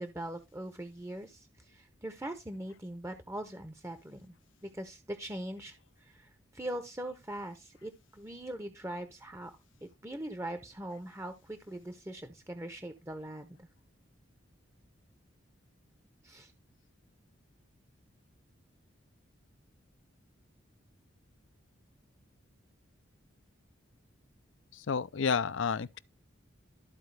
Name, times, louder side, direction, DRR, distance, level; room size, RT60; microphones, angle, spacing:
voice 1, 0.0-4.3 4.6-9.5 9.8-13.7 16.2-16.5, right 1 dB, 15° right, 0.7 m, -41 dB
voice 2, 24.7-26.0, left 6 dB, 70° left, 0.5 m, -30 dB
13.5 x 4.5 x 3.3 m
head